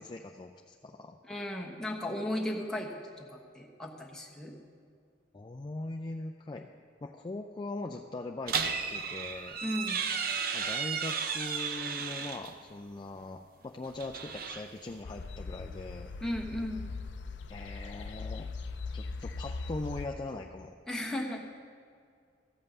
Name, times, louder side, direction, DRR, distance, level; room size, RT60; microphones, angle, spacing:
voice 1, 0.0-1.2 5.3-6.7 7.0-9.6 10.5-16.1 17.5-18.5 18.9-20.8, left 2 dB, 25° left, 2 dB, 0.4 m, -41 dB
voice 2, 1.2-4.5 9.6-10.0 16.2-16.9 20.9-21.5, left 1 dB, 5° left, -2 dB, 1.2 m, -36 dB
sound 1, 8.5-12.5 13.8-15.0, right 6 dB, 55° right, 0.6 m, -34 dB
sound 2, 15.0-20.1, left 3 dB, 80° left, 0.5 m, -40 dB
13.5 x 5.6 x 7.9 m, 2.2 s
head